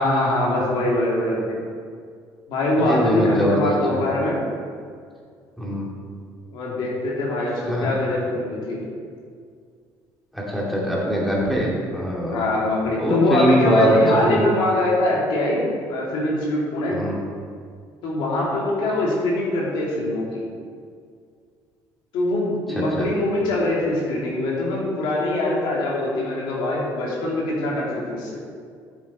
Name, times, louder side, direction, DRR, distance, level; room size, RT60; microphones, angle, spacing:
voice 1, 0.0-1.6 2.5-4.4 6.5-8.8 12.3-17.0 18.0-20.4 22.1-28.4, left 1 dB, 80° left, -4 dB, 2.3 m, -23 dB
voice 2, 2.8-4.0 5.6-5.9 7.7-7.9 10.3-12.4 13.0-13.9 14.3-14.4 16.9-17.2 23.0-23.1, equal, ahead, -5 dB, 2.4 m, -22 dB
8.9 x 7.4 x 4.2 m, 2.1 s
cardioid pair, 105°, 8 cm